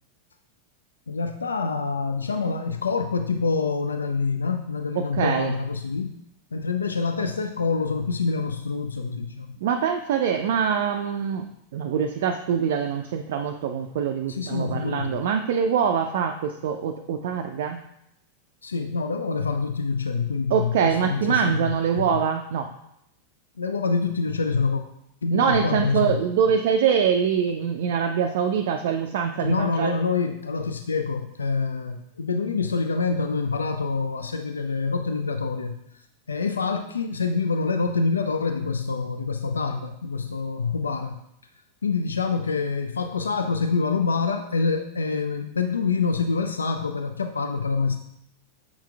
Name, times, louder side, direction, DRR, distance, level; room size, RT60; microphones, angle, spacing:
voice 1, 1.1-6.1 6.5-9.6 14.3-15.2 18.6-22.2 23.6-24.8 25.2-26.2 29.4-36.0 36.3-41.2 41.8-48.0, left 4 dB, 75° left, 7 dB, 0.3 m, -26 dB
voice 2, 5.0-5.5 9.6-11.5 11.7-17.8 20.5-22.7 25.3-29.9, right 7 dB, 55° right, 4 dB, 0.3 m, -24 dB
7.1 x 5.7 x 2.3 m, 0.79 s
figure-of-eight pair, 90°, 0 cm